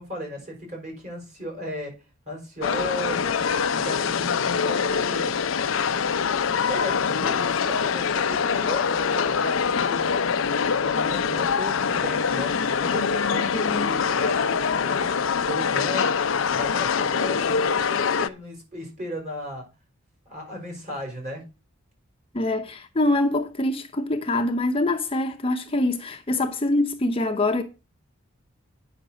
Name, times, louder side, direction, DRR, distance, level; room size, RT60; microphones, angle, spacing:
voice 1, 0.0-1.9 2.3-3.4 3.7-5.4 6.7-10.1 10.8-15.1 15.5-16.2 16.5-19.6 20.3-21.4, left 1 dB, 40° right, 5.1 m, -35 dB
sound 1, 2.6-18.3, left 6 dB, 70° left, 0.6 m, -24 dB
voice 2, 13.5-13.9 22.3-27.6, left 2 dB, 30° left, 0.8 m, -24 dB
8.9 x 5.9 x 6.3 m
head